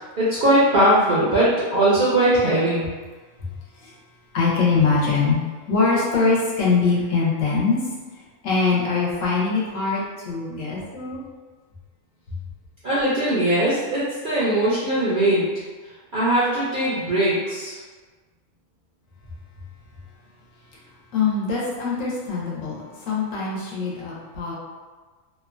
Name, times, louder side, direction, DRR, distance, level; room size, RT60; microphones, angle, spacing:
voice 1, 0.2-2.9 12.8-15.5 16.1-17.8, right 1 dB, 60° right, -9 dB, 0.5 m, -20 dB
voice 2, 4.3-7.8 8.4-11.2 21.1-24.5, left 4 dB, 75° left, -5 dB, 1.1 m, -23 dB
2.8 x 2.1 x 2.5 m, 1.4 s
omnidirectional pair, 1.4 m